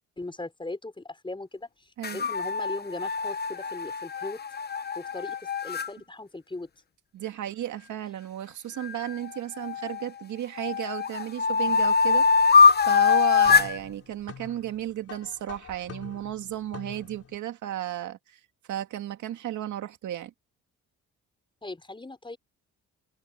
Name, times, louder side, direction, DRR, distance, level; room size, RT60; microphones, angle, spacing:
voice 1, 0.2-4.4 5.0-6.7 21.6-22.4, left 2 dB, 15° left, 5.7 m, -39 dB
sound 1, 2.0-5.9 8.8-10.1 10.6-13.8, left 5 dB, 35° left, 0.9 m, -23 dB
voice 2, 2.0-2.3 7.1-18.4 18.7-20.3, right 12 dB, 75° right, 2.3 m, -34 dB
sound 2, 12.6-17.4, left 7 dB, 50° left, 4.1 m, -45 dB
cardioid pair, 90°, 30 cm